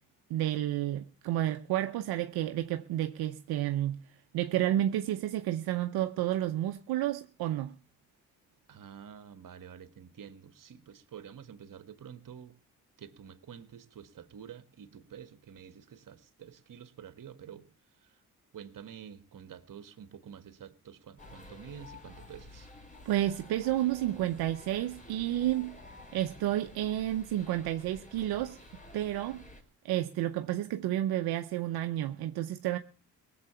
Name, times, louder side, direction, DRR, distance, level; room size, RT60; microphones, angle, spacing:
voice 1, 0.3-4.0 4.3-7.7 23.0-25.8 26.1-28.6 28.9-29.4 29.8-32.8, right 13 dB, 85° right, 0.8 m, -31 dB
voice 2, 8.7-12.5 13.0-17.7 18.0-18.2 18.5-22.7, right 8 dB, 60° right, 1.6 m, -49 dB
sound 1, 21.2-29.6, left 1 dB, 20° left, 4.2 m, -51 dB
18.5 x 7.7 x 7.0 m
supercardioid pair, 55°, 36 cm